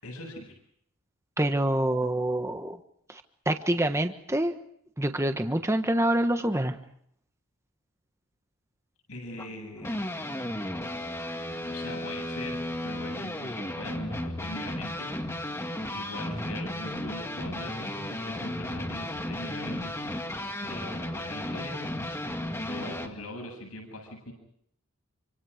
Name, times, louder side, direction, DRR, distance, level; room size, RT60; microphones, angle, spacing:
voice 1, 0.0-0.5 9.1-10.0 11.7-15.3 15.9-20.0 20.6-21.8 22.6-24.3, left 1 dB, 80° left, 2 dB, 7.9 m, -41 dB
voice 2, 1.4-2.8 3.1-4.5 5.0-6.8, right 1 dB, 10° right, 7 dB, 1.3 m, -26 dB
sound 1, 9.4-23.1, left 1 dB, 10° left, 2.2 m, -34 dB
28.0 x 25.5 x 5.1 m, 0.68 s
head